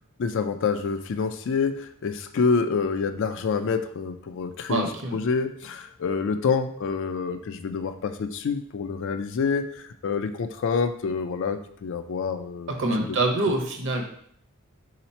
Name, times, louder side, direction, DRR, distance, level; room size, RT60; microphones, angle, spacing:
voice 1, 0.2-4.9 5.1-9.6 10.0-12.7, left 5 dB, 55° left, 9 dB, 0.3 m, -27 dB
voice 2, 4.7-5.2 12.7-14.0, right 2 dB, 55° right, 2 dB, 0.8 m, -25 dB
3.9 x 2.9 x 4.2 m, 0.64 s
head